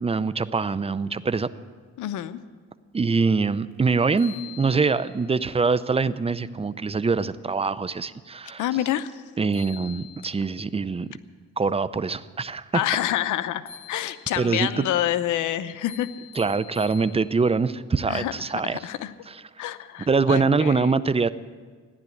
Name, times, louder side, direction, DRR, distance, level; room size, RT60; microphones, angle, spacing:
voice 1, 0.0-1.5 2.9-8.6 9.4-11.1 11.6-12.8 14.4-14.8 16.4-18.8 20.1-21.3, right 4 dB, 20° right, 15 dB, 0.6 m, -24 dB
voice 2, 2.0-2.4 8.6-9.2 12.7-13.6 13.9-16.1 18.1-18.3 18.6-19.1 19.6-20.9, left 12 dB, 80° left, 12 dB, 0.8 m, -27 dB
sound 1, 3.7-3.8 4.2-5.3 9.2-9.3 9.5-10.6 13.7-14.6 15.8-17.6, left 9 dB, 65° left, 5.9 m, -45 dB
15.0 x 10.5 x 8.5 m, 1.5 s
cardioid pair, 90°, 30 cm